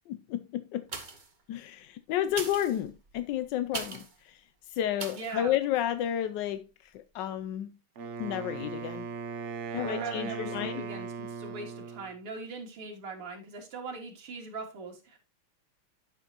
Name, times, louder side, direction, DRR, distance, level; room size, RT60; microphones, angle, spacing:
voice 1, 0.1-0.9 1.5-7.8 8.2-9.1 9.7-10.8, left 11 dB, 75° left, 1.1 m, -32 dB
sound 1, 0.8-1.4 2.2-4.2 5.0-5.4 5.9-6.0, right 3 dB, 30° right, 1.0 m, -40 dB
voice 2, 5.1-5.5 9.8-15.2, right 3 dB, 85° right, 3.1 m, -40 dB
Wind instrument woodwind instrument, 8.0-12.1, right 5 dB, 65° right, 0.7 m, -38 dB
12.0 x 5.9 x 2.9 m
omnidirectional pair, 2.4 m